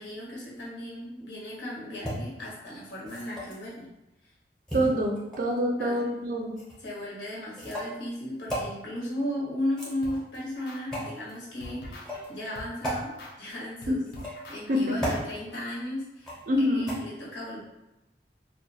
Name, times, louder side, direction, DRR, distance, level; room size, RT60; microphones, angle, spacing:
voice 1, 0.0-3.9 5.8-6.0 6.8-13.1 13.4-14.0 14.5-16.3 16.6-17.6, left 1 dB, 90° left, -4 dB, 0.8 m, -35 dB
sound 1, 2.0-2.1 3.0-3.7 4.7-5.6 6.6-6.8 7.6-7.9 8.5-8.7 9.6-10.3 10.9-11.1 12.0-12.2 12.8-13.0 14.1-14.5 15.0-15.2 16.2-16.5 16.9-17.0, equal, 5° left, 0.6 m, -34 dB
voice 2, 4.7-6.5 13.9-14.0 14.7-15.1 16.5-17.0, equal, 50° right, 1 dB, 0.4 m, -26 dB
sound 2, 10.0-11.3 11.6-15.3, left 1 dB, 65° left, 0.4 m, -45 dB
2.3 x 2.1 x 2.6 m, 0.95 s
head